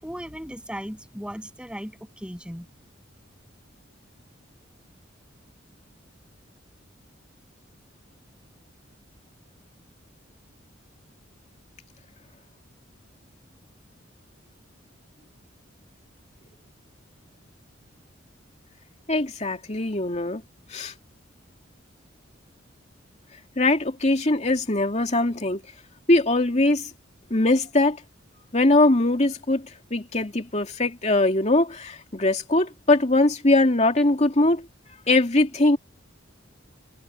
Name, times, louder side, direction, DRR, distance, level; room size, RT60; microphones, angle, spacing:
voice 1, 0.0-2.7, equal, 5° right, 7.5 m, -37 dB
voice 2, 19.1-20.4 20.7-20.9 23.6-25.6 26.1-26.8 27.3-28.0 28.5-29.6 29.9-34.6 35.1-35.8, left 2 dB, 35° left, 2.6 m, -21 dB
head